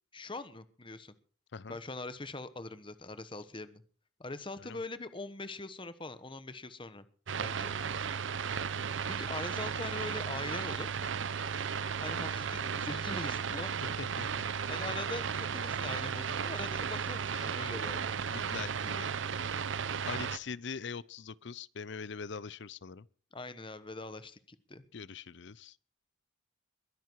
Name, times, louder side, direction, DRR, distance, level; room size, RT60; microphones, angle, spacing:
voice 1, 0.1-1.1 1.7-3.8 4.2-7.0 7.4-7.7 9.0-10.9 12.0-13.9 14.7-18.2 23.3-24.8, left 2 dB, 25° left, 1.1 m, -42 dB
sound 1, 7.3-20.4, right 6 dB, 75° right, 0.7 m, -35 dB
voice 2, 12.5-13.0 14.0-14.3 18.3-19.1 19.4-19.6 20.1-23.1 24.9-25.8, left 5 dB, 65° left, 0.6 m, -43 dB
22.0 x 10.5 x 4.6 m
head